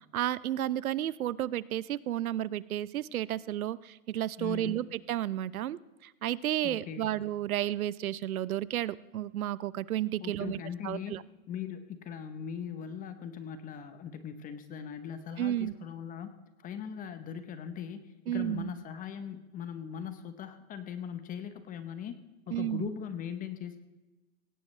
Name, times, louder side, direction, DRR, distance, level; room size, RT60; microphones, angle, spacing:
voice 1, 0.1-10.6 10.8-11.2 15.4-15.7 18.3-18.7 22.5-22.9, right 12 dB, 80° right, 19 dB, 0.8 m, -32 dB
voice 2, 4.4-4.8 6.6-7.1 10.2-16.3 16.6-22.1 22.5-23.8, left 8 dB, 20° left, 10 dB, 1.0 m, -40 dB
18.5 x 17.0 x 3.3 m, 1.1 s
hypercardioid pair, 135°, 42 cm